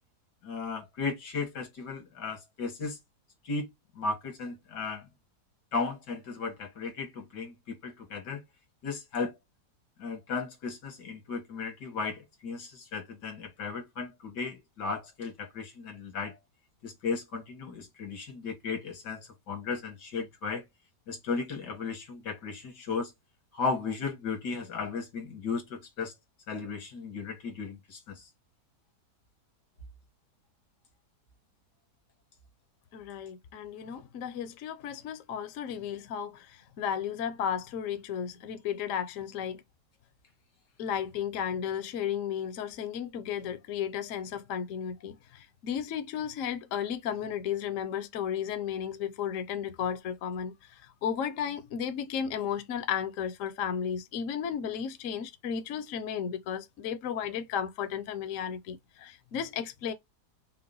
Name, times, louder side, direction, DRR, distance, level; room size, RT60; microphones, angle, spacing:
voice 1, 0.4-3.0 3.4-3.7 4.0-5.0 5.7-8.4 8.8-9.4 10.0-16.4 16.8-20.6 21.1-23.1 23.5-26.1 26.5-28.3, left 4 dB, 90° left, 2.1 m, -35 dB
voice 2, 32.9-39.6 40.8-50.5 51.0-59.9, left 8 dB, 60° left, 1.0 m, -34 dB
5.6 x 2.2 x 3.8 m
omnidirectional pair, 1.8 m